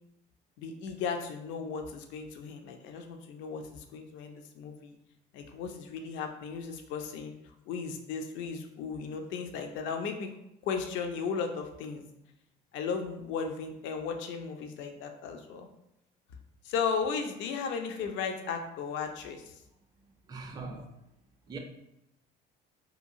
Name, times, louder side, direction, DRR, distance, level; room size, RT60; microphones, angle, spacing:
voice 1, 0.6-5.0 5.3-7.3 7.7-10.3 10.6-12.0 12.7-15.7 16.6-19.5, left 5 dB, 70° left, 5 dB, 0.4 m, -35 dB
voice 2, 20.3-20.9 21.5-21.6, right 3 dB, 20° right, 2 dB, 0.4 m, -41 dB
2.8 x 2.3 x 2.6 m, 0.84 s
supercardioid pair, 80°, 20 cm